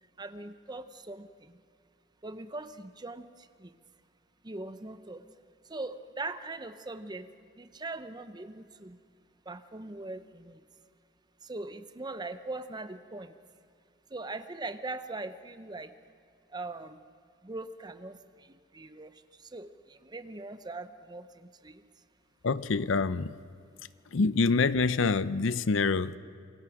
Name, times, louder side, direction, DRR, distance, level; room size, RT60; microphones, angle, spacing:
voice 1, 0.2-1.6 2.2-3.3 3.6-3.7 4.4-5.2 5.7-7.3 7.6-9.0 9.5-10.6 11.4-13.3 14.1-15.9 16.5-17.0 17.4-18.2 18.7-19.1 19.5-21.8, right 2 dB, 20° right, 11 dB, 0.7 m, -40 dB
voice 2, 22.4-23.3 24.1-26.2, left 4 dB, 70° left, 16 dB, 0.6 m, -26 dB
26.5 x 22.5 x 5.0 m, 2.3 s
head